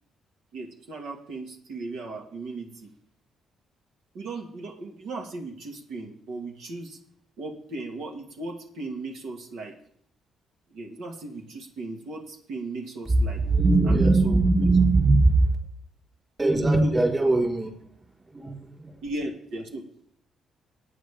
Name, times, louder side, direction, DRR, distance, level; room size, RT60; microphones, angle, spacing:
voice 1, 0.5-2.9 4.1-7.0 7.4-9.8 10.7-13.4 13.9-14.4 16.5-16.9 19.0-19.9, right 2 dB, 80° right, 3 dB, 2.1 m, -36 dB
voice 2, 13.1-15.6 16.4-17.9 18.2-19.0, right 2 dB, 25° right, 0 dB, 4.5 m, -21 dB
18.0 x 9.3 x 3.7 m, 0.64 s
cardioid pair, 90°, 0 cm